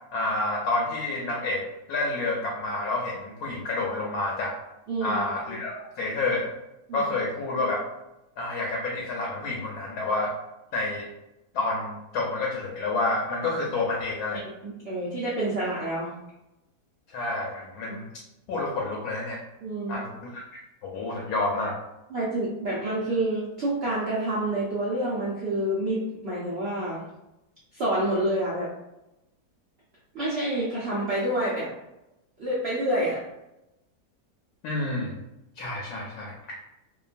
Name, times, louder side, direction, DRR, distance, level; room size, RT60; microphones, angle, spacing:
voice 1, 0.1-4.5 5.0-6.5 6.9-7.8 8.4-10.3 10.7-11.1 11.5-14.4 17.1-18.1 18.5-19.4 19.9-21.7 34.6-35.1 35.6-36.3, left 2 dB, 70° left, -2 dB, 1.0 m, -29 dB
voice 2, 4.9-5.2 6.9-7.1 14.6-16.1 19.6-20.0 22.1-27.0 27.7-28.7 30.1-31.7 32.4-33.2, right 1 dB, 85° right, -7 dB, 0.5 m, -28 dB
2.9 x 2.2 x 2.4 m, 0.92 s
omnidirectional pair, 1.9 m